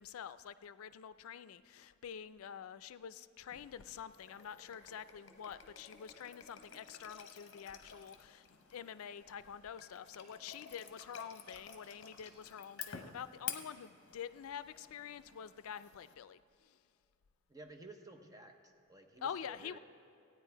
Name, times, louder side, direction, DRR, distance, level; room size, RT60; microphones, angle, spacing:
voice 1, 0.0-16.4 19.2-19.8, left 8 dB, 85° left, 15 dB, 0.4 m, -47 dB
sound 1, 3.5-16.1, left 7 dB, 60° left, 0.9 m, -52 dB
voice 2, 17.5-19.8, right 2 dB, 15° right, 4 dB, 0.8 m, -54 dB
15.5 x 9.5 x 4.5 m, 2.5 s
head